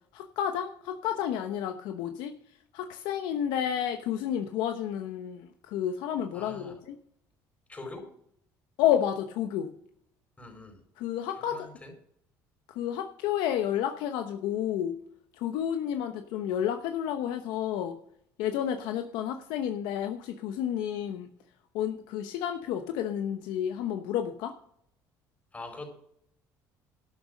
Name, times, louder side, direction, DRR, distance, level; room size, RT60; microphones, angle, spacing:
voice 1, 0.1-2.3 2.7-6.9 8.8-9.7 11.0-11.7 12.7-15.0 15.4-18.0 18.4-21.3 21.7-24.5, left 10 dB, 80° left, 6 dB, 0.9 m, -30 dB
voice 2, 6.3-6.7 7.7-8.1 10.4-10.8 11.4-11.9 25.5-25.9, left 2 dB, 20° left, 3 dB, 4.6 m, -43 dB
12.5 x 6.5 x 6.5 m, 0.68 s
cardioid pair, 100°, 8 cm